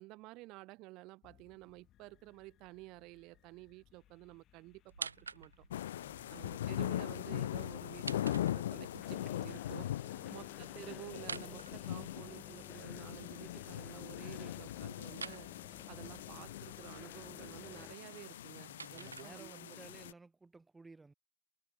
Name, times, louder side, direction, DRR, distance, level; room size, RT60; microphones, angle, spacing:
voice 1, 0.0-5.6 6.3-19.8, right 22 dB, 40° right, 1.6 m, -52 dB
sound 1, 1.2-18.0, left 13 dB, 30° left, 1.6 m, -55 dB
sound 2, 4.9-5.8 7.8-9.0 11.1-12.5 15.1-15.5 18.2-19.8, right 5 dB, 85° right, 2.0 m, -47 dB
sound 3, 5.7-20.1, left 12 dB, 65° left, 0.6 m, -41 dB
voice 2, 5.9-6.5 10.0-10.5 18.6-21.1, right 3 dB, 10° right, 2.8 m, -57 dB
hypercardioid pair, 105°, 0 cm